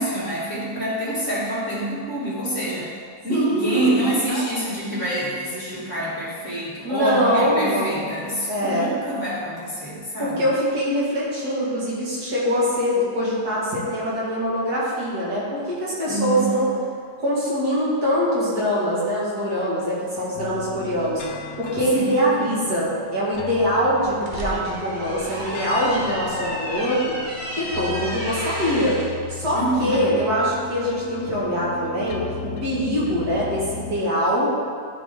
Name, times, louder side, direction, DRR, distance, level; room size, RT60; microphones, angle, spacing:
voice 1, 0.0-2.9 3.2-10.4 16.0-16.6 21.9-22.4 29.5-30.2, right 1 dB, 45° left, -8 dB, 2.5 m, -26 dB
voice 2, 3.3-4.4 6.8-8.1 8.5-8.9 10.2-16.7 17.2-21.2 21.6-27.2 27.5-29.0 29.3-34.5, equal, 70° right, -7 dB, 2.6 m, -23 dB
sound 1, 20.3-34.0, left 7 dB, 80° left, 0.6 m, -36 dB
sound 2, 24.0-29.1, equal, 30° right, 1.3 m, -33 dB
12.0 x 4.6 x 3.7 m, 2.1 s
omnidirectional pair, 1.8 m